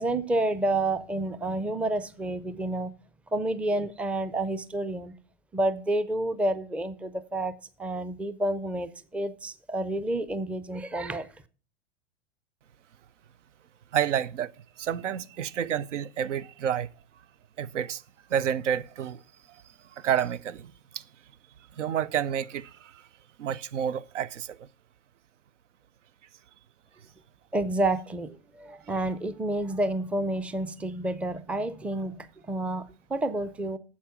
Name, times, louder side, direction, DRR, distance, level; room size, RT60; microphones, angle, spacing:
voice 1, 0.0-2.9 3.3-5.1 5.5-7.5 7.8-11.3 27.5-33.8, right 1 dB, 5° right, 0.4 m, -29 dB
voice 2, 13.9-14.5 14.8-16.9 17.6-18.0 18.3-19.2 20.0-21.0 21.8-23.0 23.4-24.6, right 9 dB, 85° right, 0.6 m, -29 dB
8.5 x 7.4 x 5.7 m
hypercardioid pair, 100°, 36 cm